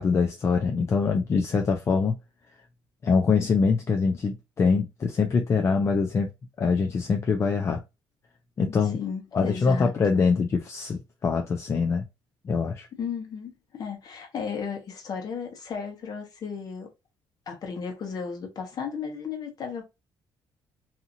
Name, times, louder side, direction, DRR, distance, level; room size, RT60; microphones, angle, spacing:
voice 1, 0.0-2.2 3.0-6.3 6.6-7.8 8.6-9.0 9.3-12.0 12.4-12.9, left 5 dB, 30° left, 0.4 m, -24 dB
voice 2, 8.9-9.9 13.0-16.9 17.5-19.8, left 6 dB, 45° left, 1.0 m, -34 dB
2.7 x 2.4 x 2.7 m
cardioid pair, 130°, 9 cm